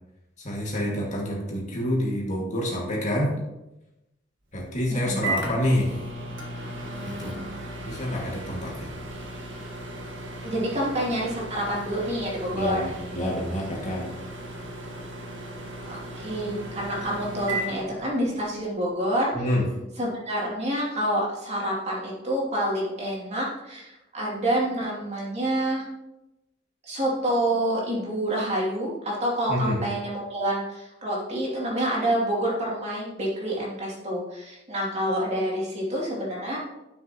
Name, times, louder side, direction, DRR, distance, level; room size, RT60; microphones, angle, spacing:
voice 1, 0.4-3.3 4.5-5.9 7.1-7.4 7.8-8.9 12.5-14.1 19.3-19.7 29.5-29.8, left 1 dB, 40° left, -3 dB, 2.1 m, -27 dB
Microwave oven, 4.6-18.6, right 1 dB, 70° right, 1.7 m, -36 dB
voice 2, 4.9-5.3 10.4-12.8 15.9-19.3 20.0-25.9 26.8-36.6, right 1 dB, 35° right, -5 dB, 2.8 m, -28 dB
11.0 x 6.6 x 3.0 m, 0.93 s
head